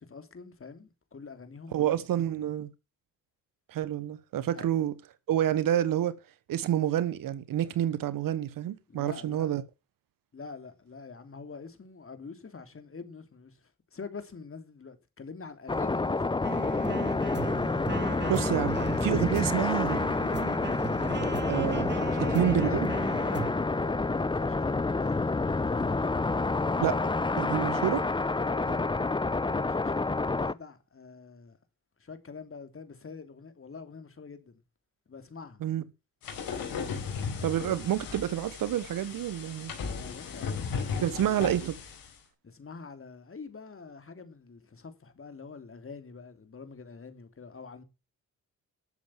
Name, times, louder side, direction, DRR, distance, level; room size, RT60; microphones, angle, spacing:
voice 1, 0.0-2.0 4.5-4.7 8.9-9.5 10.3-17.2 21.9-22.8 23.2-25.2 25.6-26.0 28.4-28.8 29.4-31.6 32.0-34.6 35.1-35.6 39.8-41.1 42.4-47.8, left 5 dB, 40° left, 3.0 m, -45 dB
voice 2, 1.7-2.7 3.7-4.9 5.3-6.2 6.5-9.6 18.3-20.0 21.5-22.0 22.3-22.9 26.8-27.0 27.4-28.1 35.6-35.8 37.4-39.7 41.0-41.8, right 11 dB, 70° right, 1.1 m, -28 dB
sound 1, 15.7-30.5, left 3 dB, 15° left, 0.7 m, -28 dB
sound 2, 16.4-23.5, right 6 dB, 30° right, 0.9 m, -37 dB
sound 3, 36.2-42.1, left 5 dB, 80° left, 4.3 m, -36 dB
12.5 x 7.3 x 7.2 m
supercardioid pair, 55°, 34 cm